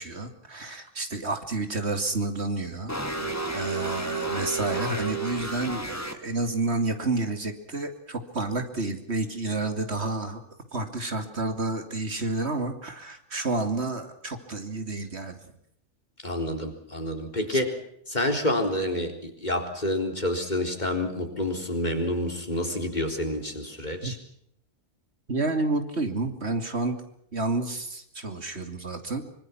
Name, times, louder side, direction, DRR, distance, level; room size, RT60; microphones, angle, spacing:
voice 1, 0.0-2.9 3.2-10.4 10.7-15.5 17.5-17.6 24.0-24.1 25.3-27.0 27.3-29.2, right 2 dB, 65° right, 7 dB, 3.1 m, -30 dB
sound 1, 2.9-6.1, right 2 dB, 15° left, 2.3 m, -31 dB
voice 2, 16.2-17.8 18.1-24.2, left 1 dB, 40° left, 5 dB, 4.2 m, -28 dB
25.5 x 25.0 x 6.0 m, 0.71 s
omnidirectional pair, 1.2 m